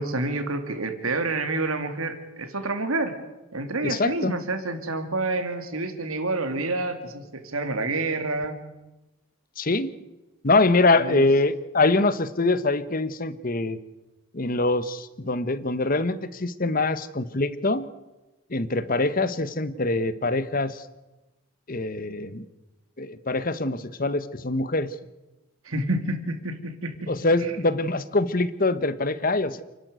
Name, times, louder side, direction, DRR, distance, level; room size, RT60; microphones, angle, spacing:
voice 1, 0.0-3.2 3.5-8.6 11.0-11.2 25.6-27.1 27.4-27.5, right 2 dB, 80° right, 7 dB, 2.7 m, -28 dB
voice 2, 3.8-4.3 9.6-9.9 10.4-13.8 14.3-17.9 18.5-20.8 21.7-22.5 23.0-24.9 27.1-29.6, left 2 dB, 40° left, 14 dB, 1.1 m, -24 dB
29.0 x 12.0 x 8.1 m, 1.0 s
head